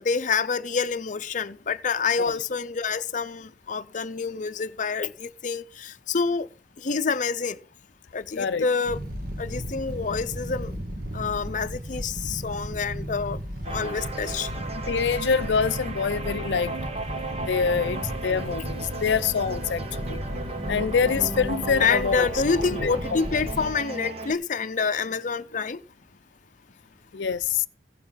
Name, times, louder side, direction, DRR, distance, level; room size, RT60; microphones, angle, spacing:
voice 1, 0.0-6.5 6.8-7.6 8.1-9.0 9.4-10.7 11.1-13.4 13.7-14.5 21.8-25.8, left 5 dB, 45° left, 0.6 m, -27 dB
sound 1, 8.8-23.8, equal, 55° right, 1.9 m, -35 dB
sound 2, 13.6-24.3, right 2 dB, 35° right, 1.4 m, -35 dB
voice 2, 14.9-16.8 17.5-20.2 20.7-22.3 22.8-22.9 27.1-27.7, left 6 dB, 85° left, 0.5 m, -25 dB
15.5 x 7.0 x 5.6 m
head